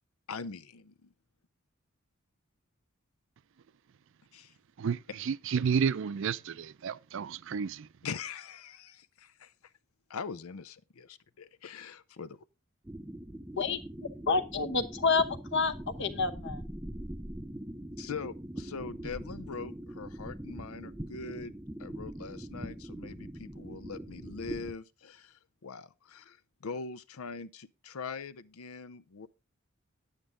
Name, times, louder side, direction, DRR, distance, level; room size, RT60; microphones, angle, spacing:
voice 1, 0.3-1.1 4.3-4.5 8.0-9.5 10.1-12.4 18.0-21.5 21.8-26.4 26.6-29.3, left 5 dB, 85° left, 0.6 m, -42 dB
voice 2, 4.8-7.9, right 6 dB, 60° right, 0.4 m, -31 dB
sound 1, 12.8-24.7, right 1 dB, 10° right, 0.5 m, -42 dB
voice 3, 14.3-15.7 16.0-16.6, left 4 dB, 60° left, 0.9 m, -28 dB
9.6 x 8.9 x 3.7 m
head